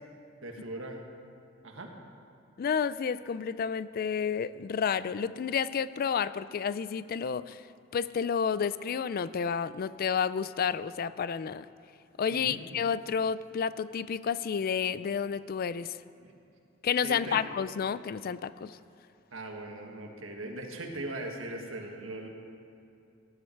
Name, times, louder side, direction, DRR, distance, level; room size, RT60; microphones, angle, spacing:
voice 1, 0.4-1.0 1.6-1.9 12.3-12.6 16.2-16.3 17.0-17.4 19.3-22.3, right 2 dB, 75° right, 2 dB, 1.7 m, -39 dB
voice 2, 2.6-7.6 7.9-11.7 12.2-16.0 16.8-18.8, left 7 dB, 50° left, 16 dB, 0.3 m, -30 dB
18.0 x 11.5 x 4.6 m, 2.6 s
head